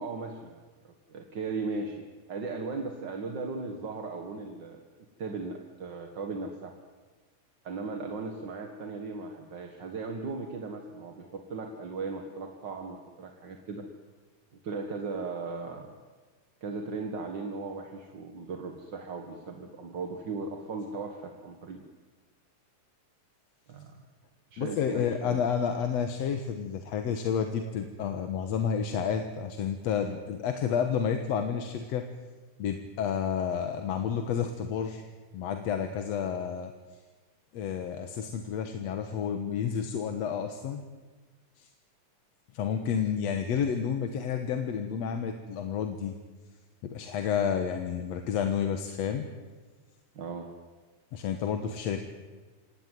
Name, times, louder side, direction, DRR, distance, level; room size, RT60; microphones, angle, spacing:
voice 1, 0.0-4.8 5.2-6.7 7.6-13.8 14.6-16.0 16.6-21.9 23.7-23.9 24.5-25.4 50.1-50.5, right 4 dB, 40° right, 4 dB, 1.9 m, -37 dB
voice 2, 24.6-32.1 32.6-35.1 35.3-36.7 37.5-40.8 41.6-41.7 42.5-46.2 46.8-49.3 51.1-52.0, left 7 dB, 60° left, 6 dB, 2.3 m, -30 dB
27.0 x 18.0 x 9.3 m, 1.3 s
omnidirectional pair, 3.5 m